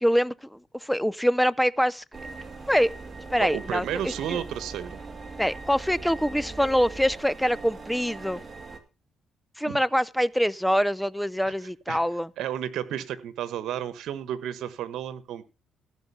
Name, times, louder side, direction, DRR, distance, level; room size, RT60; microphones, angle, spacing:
voice 1, 0.0-2.0 2.7-2.9 3.3-4.4 5.4-8.4 9.6-12.3, equal, ahead, 0.6 m, -25 dB
sound 1, 2.1-8.8, right 3 dB, 25° right, 2.6 m, -40 dB
voice 2, 3.4-5.0 9.6-9.8 11.4-11.5 11.9-12.0 12.4-15.4, right 10 dB, 80° right, 1.3 m, -32 dB
15.5 x 5.3 x 6.9 m
cardioid pair, 90°, 0 cm